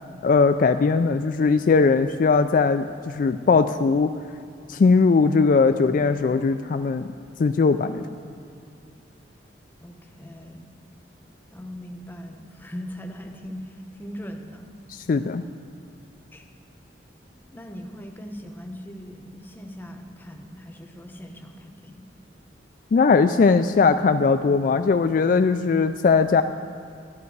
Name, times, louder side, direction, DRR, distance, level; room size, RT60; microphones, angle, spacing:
voice 1, 0.2-4.1 4.7-7.1 7.4-8.0 14.9-15.4 22.9-26.4, left 4 dB, 45° left, 9 dB, 0.3 m, -19 dB
voice 2, 9.8-10.7 11.5-14.7 16.3-16.4 17.4-22.0, equal, 10° left, 4 dB, 0.8 m, -40 dB
12.5 x 11.0 x 4.7 m, 2.4 s
head